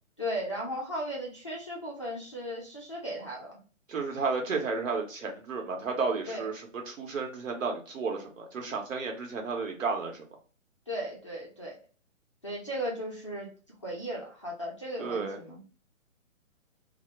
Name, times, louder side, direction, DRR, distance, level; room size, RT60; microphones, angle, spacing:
voice 1, 0.2-3.6 6.3-6.5 10.9-11.8 12.4-13.5 13.8-15.6, equal, 25° left, -5 dB, 0.3 m, -36 dB
voice 2, 3.9-10.2 15.0-15.4, right 4 dB, 75° right, 2 dB, 0.9 m, -32 dB
2.1 x 2.0 x 3.1 m, 0.38 s
hypercardioid pair, 140°, 39 cm